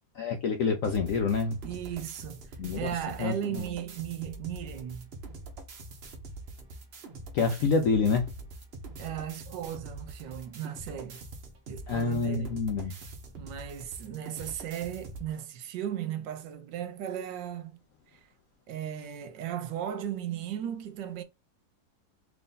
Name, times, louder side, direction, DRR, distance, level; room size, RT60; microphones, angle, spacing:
voice 1, 0.1-1.6 2.6-2.9 3.2-3.6 7.3-8.3 11.9-12.9, left 4 dB, 75° left, 0.7 m, -27 dB
sound 1, 0.8-15.3, right 2 dB, 60° right, 0.6 m, -44 dB
voice 2, 1.6-5.1 9.0-11.2 11.7-12.6 13.4-17.8 18.1-18.2 18.7-21.2, right 10 dB, 80° right, 1.3 m, -36 dB
3.4 x 2.6 x 3.6 m
omnidirectional pair, 2.0 m